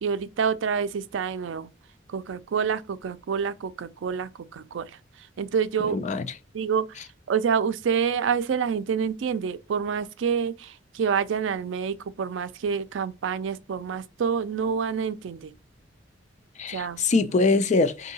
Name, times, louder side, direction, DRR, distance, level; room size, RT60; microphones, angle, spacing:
voice 1, 0.0-1.7 2.1-6.1 6.5-7.0 7.3-15.5 16.7-17.0, right 6 dB, 80° right, 0.4 m, -27 dB
voice 2, 5.8-6.3 16.6-18.1, left 3 dB, 40° left, 0.4 m, -23 dB
3.7 x 2.7 x 3.9 m
head